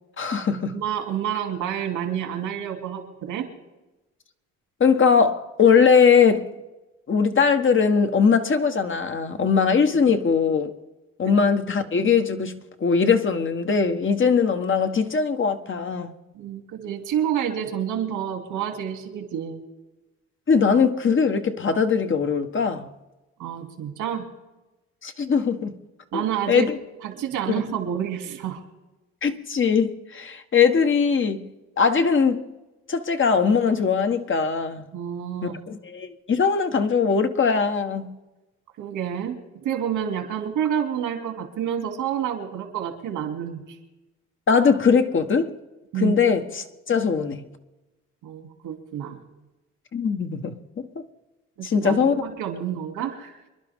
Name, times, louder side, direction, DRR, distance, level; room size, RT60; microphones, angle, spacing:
voice 1, 0.2-0.7 4.8-6.5 7.1-10.7 11.2-16.1 20.5-22.9 25.0-25.7 26.1-26.8 27.5-27.6 29.2-31.5 31.8-32.5 32.9-34.9 35.4-38.1 44.5-45.5 46.0-47.4 49.9-50.9 51.6-52.1, left 6 dB, 40° left, 1.4 m, -21 dB
voice 2, 0.7-3.5 11.2-11.3 16.3-19.6 23.4-24.3 26.1-26.7 27.0-28.6 34.9-35.6 38.8-43.8 45.9-46.2 48.2-49.2 51.6-53.4, right 9 dB, 90° right, 2.9 m, -29 dB
26.5 x 11.5 x 3.7 m
cardioid pair, 90°, 30 cm